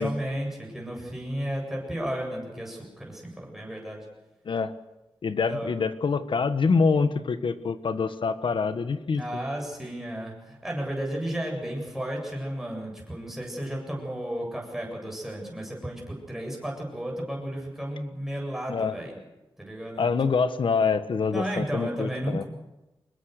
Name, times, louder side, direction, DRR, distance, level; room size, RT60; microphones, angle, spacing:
voice 1, 0.0-4.1 5.5-5.7 9.1-19.2 19.6-20.4 21.3-22.5, right 1 dB, 5° right, -1 dB, 7.6 m, -33 dB
voice 2, 5.2-9.2 18.7-18.9 20.0-22.4, left 5 dB, 70° left, 11 dB, 1.4 m, -25 dB
24.5 x 21.5 x 6.6 m, 1.0 s
wide cardioid pair, 145°, 9 cm